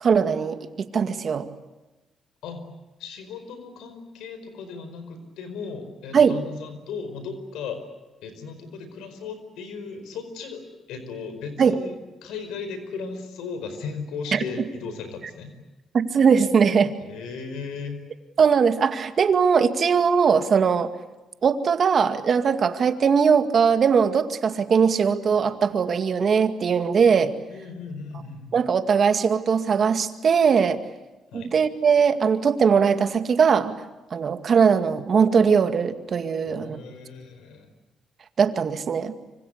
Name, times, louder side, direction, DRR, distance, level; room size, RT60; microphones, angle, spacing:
voice 1, 0.0-1.5 6.1-6.4 11.6-11.8 14.3-14.4 15.9-16.9 18.4-20.9 21.4-27.3 28.5-30.8 31.3-33.7 34.1-36.8 38.4-39.1, right 6 dB, 50° right, 9 dB, 2.1 m, -20 dB
voice 2, 3.0-7.8 8.2-11.9 12.2-15.5 17.0-18.0 27.5-28.6 31.3-31.6 36.4-37.7, left 5 dB, 90° left, 9 dB, 4.8 m, -36 dB
25.5 x 25.5 x 8.2 m, 1.1 s
cardioid pair, 90°, 0 cm